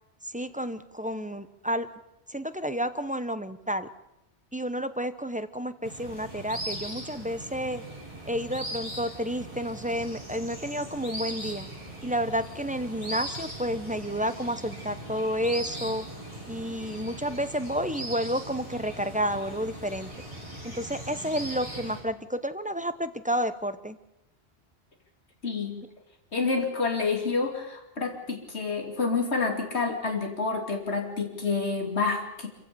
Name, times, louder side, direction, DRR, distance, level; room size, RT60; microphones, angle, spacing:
voice 1, 0.2-1.9 2.3-3.9 4.5-7.8 8.3-11.7 12.0-16.1 16.5-20.1 20.6-24.0, equal, 10° right, 11 dB, 0.7 m, -30 dB
sound 1, 5.8-22.0, right 1 dB, 30° right, 6.9 m, -39 dB
voice 2, 25.4-25.8 26.3-32.5, left 4 dB, 75° left, 3 dB, 3.0 m, -28 dB
26.0 x 15.5 x 6.8 m, 0.90 s
omnidirectional pair, 1.1 m